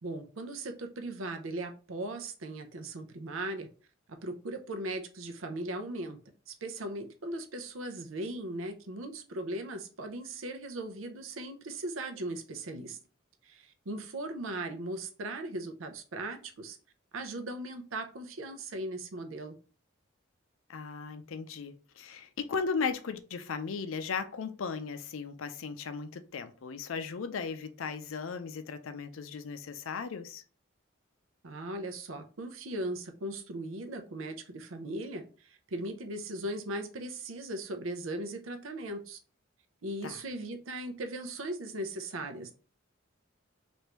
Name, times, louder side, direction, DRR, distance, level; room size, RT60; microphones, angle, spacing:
voice 1, 0.0-3.7 4.1-6.2 6.5-13.0 13.4-16.8 17.1-19.5 31.4-39.2 39.8-42.5, right 1 dB, 90° right, 0.6 m, -38 dB
voice 2, 20.7-30.4 40.0-40.2, left 5 dB, 85° left, 0.5 m, -36 dB
3.3 x 2.6 x 3.0 m
head